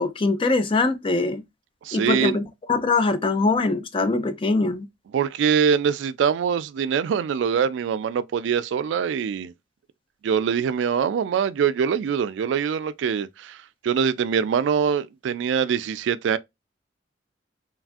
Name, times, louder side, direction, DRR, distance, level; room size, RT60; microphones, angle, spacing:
voice 1, 0.0-1.4 1.9-2.4 2.7-4.9, left 3 dB, 30° left, 0.4 m, -22 dB
voice 2, 1.8-2.4 5.1-9.5 10.2-13.6 13.8-16.4, right 7 dB, 90° right, 0.3 m, -23 dB
3.2 x 2.3 x 2.4 m
head